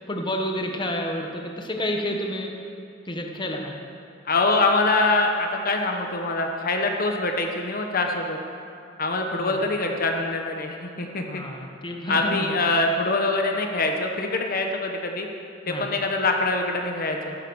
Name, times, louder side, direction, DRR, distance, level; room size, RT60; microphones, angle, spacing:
voice 1, 0.1-2.5 3.1-3.7 9.4-9.6 11.3-12.5 15.7-15.9, left 1 dB, 25° left, 2 dB, 1.2 m, -29 dB
voice 2, 4.2-8.4 9.0-11.4 12.1-15.3 15.7-17.4, left 2 dB, 50° left, 3 dB, 1.2 m, -24 dB
14.0 x 12.5 x 6.3 m, 2.6 s
head